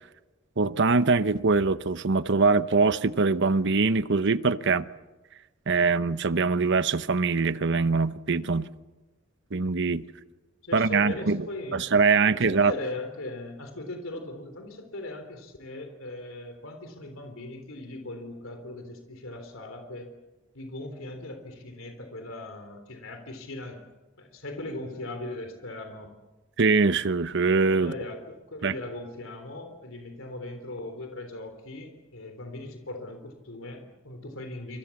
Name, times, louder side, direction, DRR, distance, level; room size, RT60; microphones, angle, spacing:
voice 1, 0.6-4.9 5.7-8.7 9.5-10.0 10.7-11.5 11.7-12.7 26.6-27.9 28.6-28.7, right 4 dB, 60° right, 0.9 m, -23 dB
voice 2, 10.6-11.8 12.3-20.1 20.5-23.8 24.2-26.1 27.8-34.8, left 2 dB, 75° left, 3.5 m, -39 dB
29.0 x 26.5 x 7.2 m
head